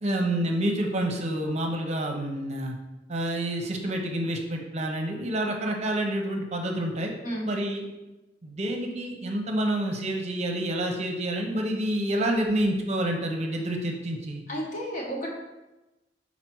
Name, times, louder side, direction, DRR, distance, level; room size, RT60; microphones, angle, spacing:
voice 1, 0.0-2.7 3.1-7.1 7.4-7.8 8.4-14.4, right 1 dB, 40° right, 2 dB, 0.8 m, -28 dB
voice 2, 14.5-15.3, equal, 45° left, -2 dB, 1.4 m, -32 dB
5.7 x 4.1 x 4.6 m, 1.0 s
head